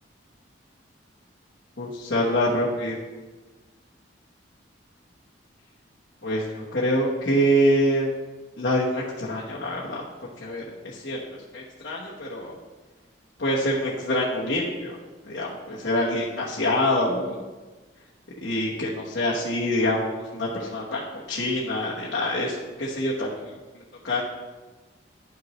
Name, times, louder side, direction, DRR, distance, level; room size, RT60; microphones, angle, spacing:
voice 1, 1.8-3.0 6.2-8.1 8.6-10.0 10.4-11.2 11.5-12.5 13.4-15.0 15.3-17.4 18.4-21.0 21.3-23.5 24.0-24.2, equal, 65° left, -5 dB, 1.1 m, -25 dB
11.0 x 6.0 x 3.1 m, 1.3 s
head